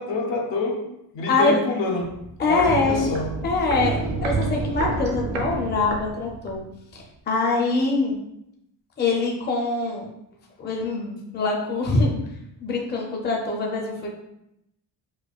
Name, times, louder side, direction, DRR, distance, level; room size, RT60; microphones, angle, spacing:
voice 1, 0.0-2.2 2.4-3.4, left 3 dB, 80° left, 1 dB, 0.8 m, -27 dB
voice 2, 1.3-1.6 2.4-3.1 3.4-6.6 6.9-8.2 9.0-10.0 10.6-12.2 12.6-14.1, left 3 dB, 25° left, -1 dB, 0.5 m, -24 dB
Walk footsteps, 2.0-6.7 7.0-7.1, right 4 dB, 70° right, 0.7 m, -29 dB
4.6 x 2.5 x 2.3 m, 0.81 s
wide cardioid pair, 165°, 43 cm